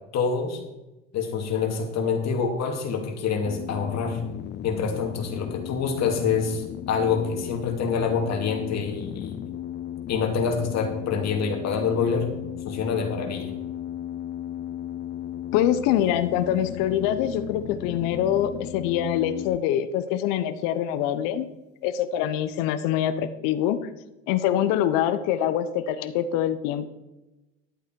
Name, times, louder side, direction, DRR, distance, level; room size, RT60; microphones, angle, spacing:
voice 1, 0.1-0.6 1.1-4.2 4.6-9.4 10.1-12.3 12.6-13.5, left 5 dB, 45° left, 3 dB, 2.7 m, -26 dB
sound 1, 3.5-19.6, left 11 dB, 30° left, 0.5 m, -36 dB
voice 2, 15.5-21.5 21.8-23.8 24.3-26.9, left 10 dB, 60° left, 11 dB, 1.0 m, -24 dB
11.5 x 8.3 x 4.6 m, 1.0 s
hypercardioid pair, 80°, 37 cm